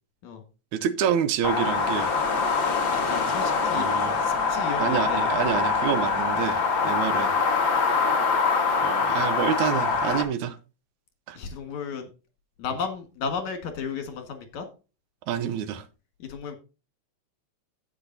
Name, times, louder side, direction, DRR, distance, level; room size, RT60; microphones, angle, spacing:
voice 1, 0.7-2.1 3.7-4.2 4.8-7.4 8.8-10.6 11.3-11.4 15.3-15.9, right 9 dB, 80° right, 2.2 m, -28 dB
sound 1, 1.4-10.2, left 4 dB, 45° left, 2.2 m, -24 dB
voice 2, 2.9-3.9 4.2-5.2 8.0-8.1 11.4-12.1 12.6-14.6 16.2-16.6, left 5 dB, 70° left, 3.1 m, -34 dB
16.5 x 5.7 x 2.7 m
omnidirectional pair, 3.4 m